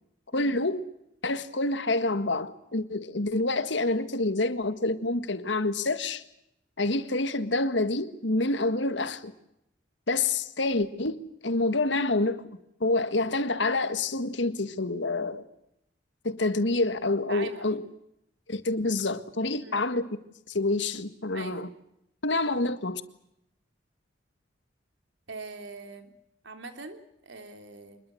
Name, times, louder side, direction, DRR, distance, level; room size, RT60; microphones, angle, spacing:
voice 1, 0.3-0.8 1.2-6.2 6.8-9.3 10.1-15.4 16.2-17.8 18.5-20.1 20.5-21.7 22.2-23.0, left 2 dB, 75° left, 1.8 m, -27 dB
voice 2, 17.3-17.8 19.6-19.8 21.3-21.6 22.5-22.8 25.3-26.1 26.4-28.0, right 3 dB, 80° right, 3.5 m, -42 dB
26.0 x 22.0 x 7.9 m
head